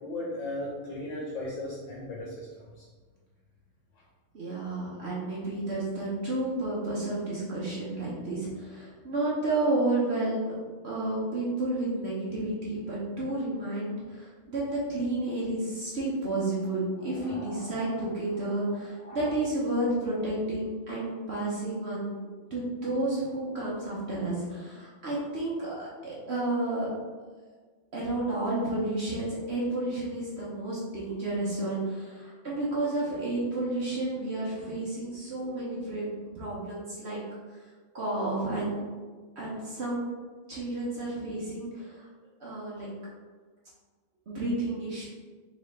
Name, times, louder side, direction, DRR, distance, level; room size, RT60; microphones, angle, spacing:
voice 1, 0.0-2.5 2.8-2.9 17.0-18.5 19.0-19.3, left 1 dB, 70° left, -3 dB, 1.4 m, -38 dB
voice 2, 4.3-10.5 10.8-26.9 27.9-36.1 36.3-37.2 37.9-38.8 39.4-40.0 40.5-42.1 42.4-42.9 44.3-45.0, right 2 dB, 60° right, -6 dB, 0.6 m, -31 dB
3.9 x 3.2 x 3.2 m, 1.4 s
omnidirectional pair, 2.3 m